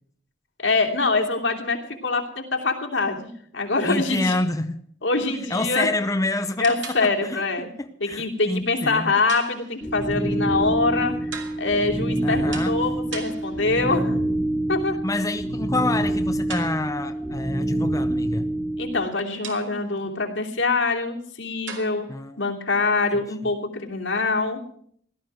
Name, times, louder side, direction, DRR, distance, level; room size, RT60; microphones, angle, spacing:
voice 1, 0.6-4.4 5.0-5.9 6.6-7.7 8.0-11.3 11.6-14.2 14.7-14.9 18.8-22.0 22.4-24.6, left 3 dB, 85° left, 1 dB, 2.8 m, -24 dB
voice 2, 3.8-4.8 5.5-6.7 7.0-7.4 7.8-9.1 12.2-12.7 15.0-18.5 22.1-22.4, left 2 dB, 20° left, 7 dB, 0.7 m, -27 dB
sound 1, 6.6-7.5 9.3-10.1 11.3-11.9 12.5-13.9 16.5-17.2 19.4-20.0 21.7-22.2, right 6 dB, 75° right, 2.7 m, -40 dB
sound 2, 9.8-19.0, right 1 dB, ahead, 1.9 m, -26 dB
17.0 x 12.0 x 6.1 m, 0.64 s
head